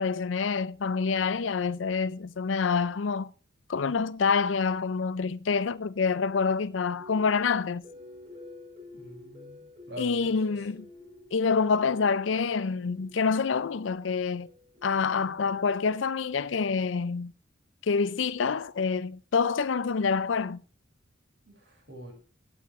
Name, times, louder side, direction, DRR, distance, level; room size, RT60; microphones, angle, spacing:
voice 1, 0.0-3.3 3.7-7.9 10.0-10.9 11.3-14.5 14.8-17.3 17.8-20.6, left 5 dB, 80° left, 0.5 m, -27 dB
sound 1, 6.9-16.4, left 2 dB, 40° right, 7.5 m, -51 dB
voice 2, 8.9-10.2 10.5-10.6 21.5-22.1, equal, 65° right, 5.5 m, -45 dB
17.0 x 9.1 x 3.2 m
head